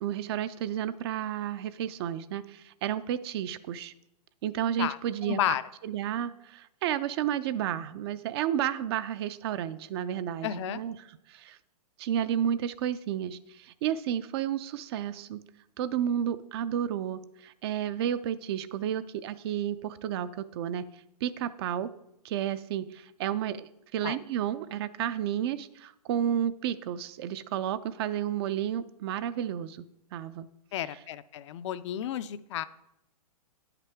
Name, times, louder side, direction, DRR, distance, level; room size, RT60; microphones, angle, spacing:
voice 1, 0.0-3.9 4.4-5.4 5.8-11.6 12.0-15.4 15.8-20.9 21.2-21.9 22.2-29.8 30.1-30.5, right 10 dB, 40° right, 15 dB, 0.4 m, -31 dB
voice 2, 4.8-5.6 10.4-10.8 24.0-24.2 30.7-32.6, left 12 dB, 50° left, 14 dB, 0.4 m, -32 dB
9.7 x 5.8 x 3.4 m, 0.83 s
hypercardioid pair, 125°, 20 cm